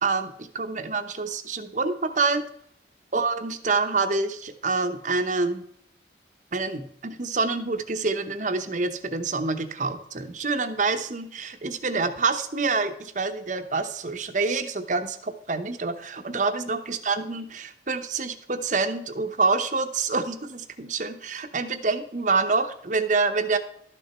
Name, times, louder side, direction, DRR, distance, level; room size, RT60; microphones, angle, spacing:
voice 1, 0.0-2.4 3.1-5.6 6.5-23.6, right 4 dB, 40° right, 8 dB, 0.8 m, -27 dB
12.5 x 6.7 x 4.3 m, 0.70 s
head